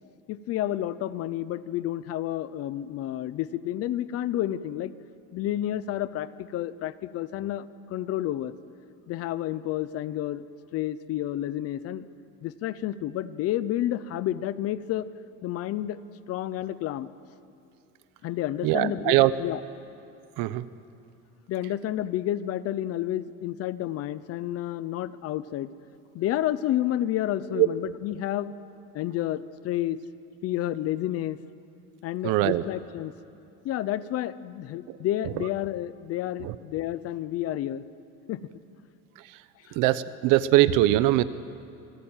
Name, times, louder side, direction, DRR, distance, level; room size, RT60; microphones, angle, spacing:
voice 1, 0.3-4.9 5.3-7.6 7.9-8.5 9.1-10.4 10.7-12.1 12.4-15.1 15.4-16.0 16.3-17.1 18.2-19.6 21.5-25.7 26.1-28.5 28.9-30.0 30.4-31.4 32.0-33.1 33.6-37.8 38.3-38.4, left 13 dB, 45° left, 16 dB, 0.8 m, -30 dB
voice 2, 18.6-19.3 20.4-20.7 27.6-27.7 32.2-32.6 34.9-35.0 36.4-36.5 39.7-41.2, right 16 dB, 75° right, 14 dB, 1.0 m, -21 dB
28.0 x 19.5 x 9.0 m, 2.6 s
cardioid pair, 175°, 32 cm